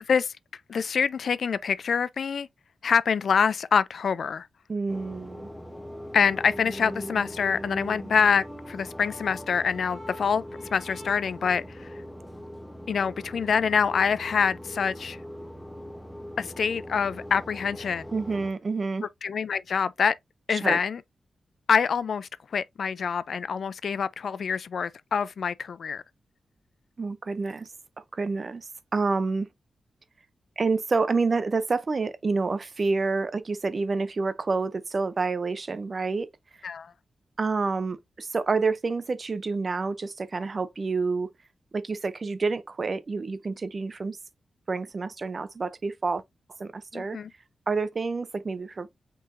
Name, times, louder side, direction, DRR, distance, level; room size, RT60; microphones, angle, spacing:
voice 1, 0.7-2.5 2.8-4.5 6.1-10.4 10.7-11.9 12.9-15.2 16.4-18.0 19.2-20.2 20.5-21.0 21.7-26.0 36.6-36.9 46.9-47.3, left 6 dB, 70° left, 0.3 m, -26 dB
voice 2, 4.7-5.5 18.1-19.0 20.5-20.8 27.0-27.7 28.1-29.5 30.6-36.3 37.4-41.3 41.7-44.2 44.7-46.2 46.6-47.2 47.7-49.0, right 4 dB, 45° right, 0.4 m, -28 dB
sound 1, 4.9-18.5, equal, 10° left, 0.8 m, -41 dB
sound 2, 6.4-11.5, equal, 20° right, 1.1 m, -43 dB
5.4 x 3.8 x 2.5 m
cardioid pair, 85°, 0 cm